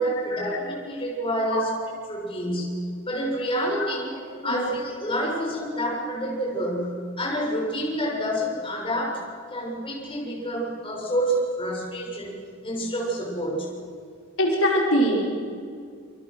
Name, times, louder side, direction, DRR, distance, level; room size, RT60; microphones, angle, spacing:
voice 1, 0.0-1.8 2.1-2.8 3.1-4.2 4.4-9.2 9.5-13.7, equal, 25° left, -3 dB, 7.1 m, -28 dB
voice 2, 14.4-15.3, equal, 75° left, -2 dB, 5.4 m, -22 dB
29.0 x 24.5 x 6.4 m, 2.2 s
head